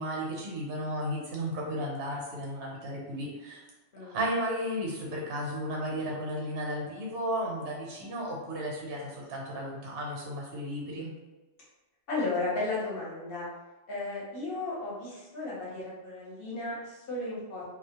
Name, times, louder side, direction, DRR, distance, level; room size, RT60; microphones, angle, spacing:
voice 1, 0.0-3.6 4.0-11.1, equal, 70° right, -2 dB, 1.0 m, -34 dB
voice 2, 12.1-13.5 13.9-17.6, left 2 dB, 50° left, -6 dB, 1.0 m, -34 dB
2.4 x 2.0 x 2.8 m, 1.1 s
omnidirectional pair, 1.3 m